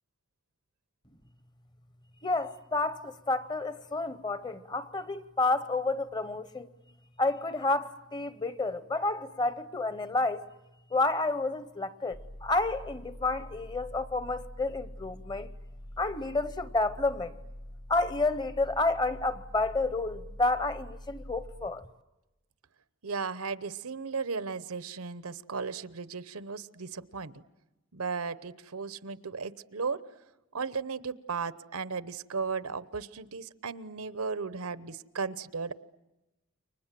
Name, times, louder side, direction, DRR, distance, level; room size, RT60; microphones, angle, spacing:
voice 1, 2.2-6.7 7.2-10.4 10.9-15.5 16.0-17.3 17.9-21.8, left 2 dB, 20° left, 0.8 m, -30 dB
sound 1, 12.1-21.7, equal, 50° left, 1.7 m, -45 dB
voice 2, 23.0-27.3 27.9-30.0 30.5-35.7, right 5 dB, 85° right, 0.9 m, -35 dB
29.5 x 24.5 x 7.6 m
head